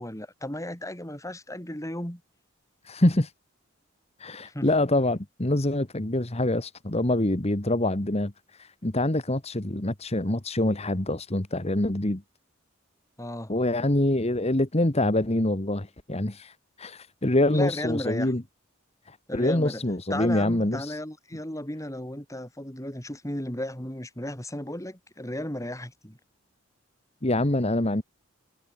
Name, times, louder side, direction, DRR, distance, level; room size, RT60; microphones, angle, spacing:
voice 1, 0.0-2.2 4.5-4.7 13.2-13.5 17.5-18.3 19.3-19.8 20.1-26.2, left 1 dB, 15° left, 4.6 m, -34 dB
voice 2, 2.8-3.3 4.2-12.2 13.5-18.4 19.1-21.0 27.2-28.0, left 1 dB, 30° left, 1.6 m, -25 dB
head